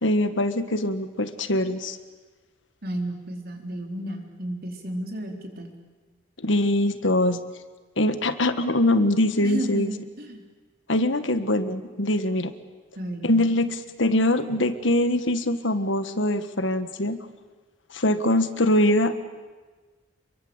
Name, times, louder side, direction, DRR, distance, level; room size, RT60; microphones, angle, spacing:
voice 1, 0.0-2.0 6.4-7.4 8.0-9.9 10.9-12.5 13.2-17.2 17.9-19.1, left 1 dB, 65° left, 10 dB, 1.6 m, -23 dB
voice 2, 2.8-5.7 9.4-10.4 13.0-13.4, right 1 dB, 50° right, 3 dB, 4.2 m, -33 dB
28.5 x 23.0 x 8.1 m, 1.4 s
head